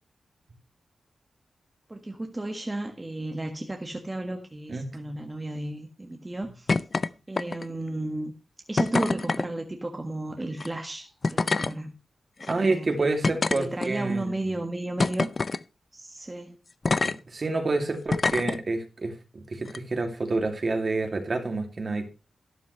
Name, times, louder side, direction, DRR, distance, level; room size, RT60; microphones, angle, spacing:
voice 1, 1.9-6.7 7.3-8.3 8.7-11.9 12.4-15.3 15.9-16.6 17.5-17.9, right 1 dB, 20° right, 3 dB, 1.6 m, -33 dB
voice 2, 4.7-5.1 12.5-14.3 17.0-22.1, right 3 dB, 45° right, 5 dB, 2.5 m, -28 dB
sound 1, 6.7-7.1 7.4-7.8 8.8-9.5 10.5-10.7 11.2-11.7 12.4-12.5 13.2-14.1 15.0-15.6 16.9-17.2 18.1-18.6 19.7-19.8, left 3 dB, 45° left, 0.5 m, -25 dB
12.5 x 11.0 x 3.2 m, 0.31 s
wide cardioid pair, 85°, 0 cm